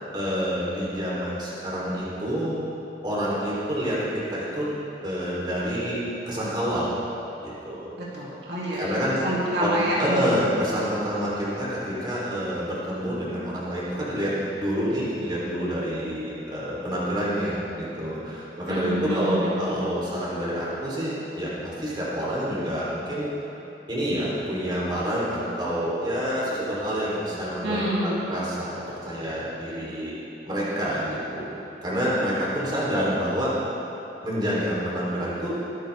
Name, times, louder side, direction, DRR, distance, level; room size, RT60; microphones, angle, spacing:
voice 1, 0.1-2.7 3.0-4.7 5.0-6.0 6.3-6.9 7.4-7.9 8.7-9.2 9.6-9.7 10.0-23.3 23.9-27.9 28.3-30.1 30.5-31.5 31.8-33.5 34.2-35.5, equal, 25° right, -7 dB, 3.5 m, -28 dB
voice 2, 8.0-10.3 18.7-19.5 27.6-28.2, equal, 70° right, -7 dB, 2.8 m, -27 dB
23.5 x 10.0 x 3.6 m, 2.9 s
head